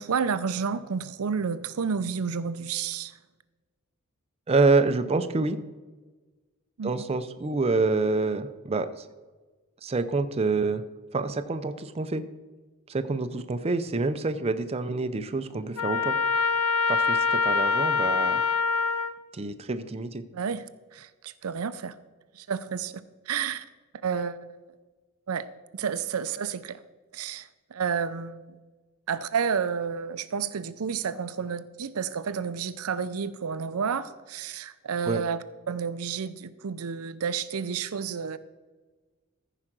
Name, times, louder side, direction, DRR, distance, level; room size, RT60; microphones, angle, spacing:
voice 1, 0.0-3.1 6.8-6.9 20.3-20.6 20.9-21.9 22.4-23.6 24.0-24.5 25.3-25.4 25.7-26.8 27.1-28.4 29.1-38.4, right 6 dB, 90° right, 13 dB, 0.5 m, -30 dB
voice 2, 4.5-5.6 6.8-9.0 9.8-10.8 11.1-12.2 12.9-16.2 16.9-18.4 19.3-20.2 35.0-35.2, right 3 dB, 30° right, 10 dB, 0.5 m, -27 dB
Trumpet, 15.8-19.1, left 4 dB, 80° left, 0.7 m, -24 dB
14.0 x 4.9 x 6.0 m, 1.3 s
head